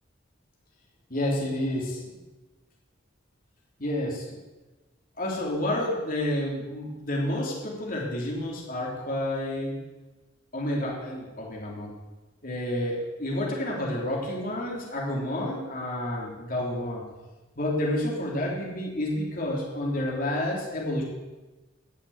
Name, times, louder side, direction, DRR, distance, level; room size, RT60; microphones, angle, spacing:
voice 1, 1.1-2.2 3.8-4.4 5.2-9.8 10.5-11.9 12.4-17.0 17.6-21.0, left 1 dB, 45° left, -2 dB, 3.2 m, -29 dB
17.0 x 6.4 x 8.0 m, 1.2 s
head